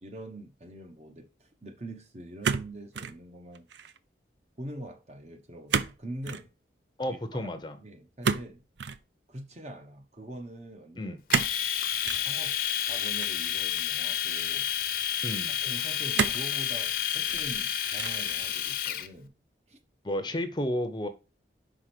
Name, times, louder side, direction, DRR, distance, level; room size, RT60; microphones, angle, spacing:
voice 1, 0.0-3.7 4.6-6.5 7.1-8.6 9.3-11.2 12.0-14.7 15.6-19.3 19.7-19.8, right 1 dB, 35° right, 0.9 m, -44 dB
sound 1, 2.4-3.2 3.5-4.0 5.7-6.0 6.2-6.5 8.2-9.0 11.3-11.6 12.0-12.3 13.2-14.0 14.7-14.8 16.1-16.5 17.1-17.6 18.0-18.3, right 6 dB, 75° right, 0.5 m, -30 dB
voice 2, 7.0-7.8 11.0-11.2 15.2-15.6 20.0-21.1, left 1 dB, 25° left, 0.7 m, -32 dB
Domestic sounds home sounds, 11.3-19.1, left 10 dB, 50° left, 0.7 m, -30 dB
5.3 x 4.9 x 5.9 m
head